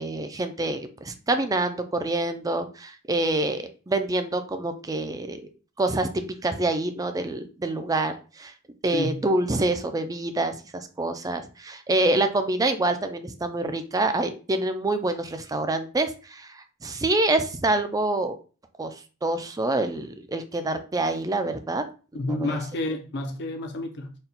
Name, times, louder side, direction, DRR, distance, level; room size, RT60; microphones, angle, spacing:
voice 1, 0.0-5.4 5.8-8.5 8.8-18.4 18.8-18.9 19.2-21.8 22.1-22.6, right 2 dB, 15° right, 0.4 m, -26 dB
voice 2, 22.1-24.1, left 2 dB, 50° left, 0.6 m, -30 dB
4.2 x 2.3 x 3.9 m
head